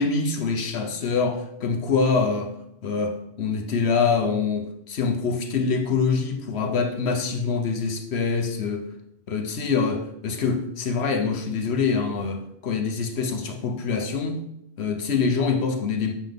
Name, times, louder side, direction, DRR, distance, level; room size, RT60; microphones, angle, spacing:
voice 1, 0.0-2.5 2.8-8.9 9.3-14.4 14.8-16.1, left 5 dB, 75° left, 1.1 m, -25 dB
7.5 x 5.7 x 3.5 m
omnidirectional pair, 1.1 m